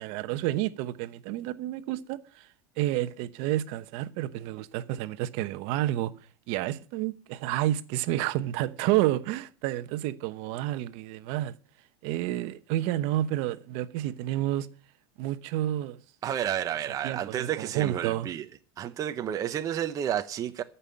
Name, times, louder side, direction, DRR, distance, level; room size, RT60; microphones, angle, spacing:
voice 1, 0.0-2.5 2.8-6.1 6.5-11.5 12.0-14.7 15.2-16.0 17.0-18.3, right 14 dB, 55° right, 1.0 m, -30 dB
voice 2, 16.2-18.4 18.8-20.6, right 10 dB, 30° right, 0.7 m, -31 dB
14.0 x 5.6 x 9.1 m
supercardioid pair, 135°, 12 cm